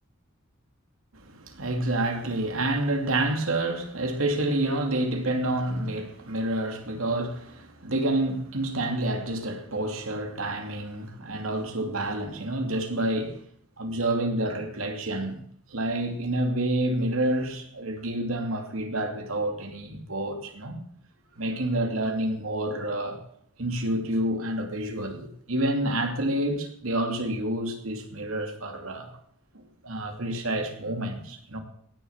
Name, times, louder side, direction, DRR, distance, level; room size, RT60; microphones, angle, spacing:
voice 1, 1.1-13.4 13.8-15.3 15.7-20.8 21.4-23.2 23.6-29.1 29.5-31.6, right 1 dB, 75° right, 2.6 m, -28 dB
17.5 x 6.8 x 7.2 m
head